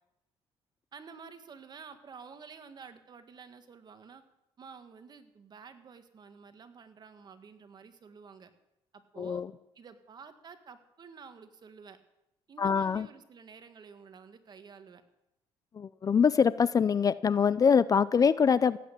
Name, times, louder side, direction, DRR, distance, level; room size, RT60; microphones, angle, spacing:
voice 1, 0.9-4.2 4.6-8.5 8.9-9.4 9.8-12.0 12.5-15.0, right 5 dB, 40° right, 9 dB, 1.7 m, -50 dB
voice 2, 9.2-9.5 12.6-13.1 15.7-18.8, left 6 dB, 35° left, 17 dB, 0.5 m, -24 dB
16.0 x 8.5 x 8.6 m, 0.85 s
cardioid pair, 95°, 11 cm